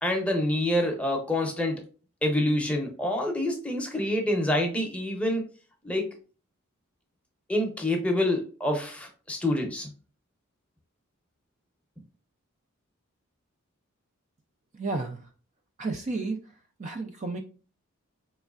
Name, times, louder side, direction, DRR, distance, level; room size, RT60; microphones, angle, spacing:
voice 1, 0.0-1.8 2.2-5.4 5.8-6.1 7.5-9.9, left 1 dB, 5° left, 2 dB, 0.7 m, -27 dB
voice 2, 14.7-15.2 15.8-16.4 16.8-17.4, right 3 dB, 35° right, 5 dB, 0.3 m, -31 dB
4.3 x 3.1 x 2.4 m, 0.37 s
head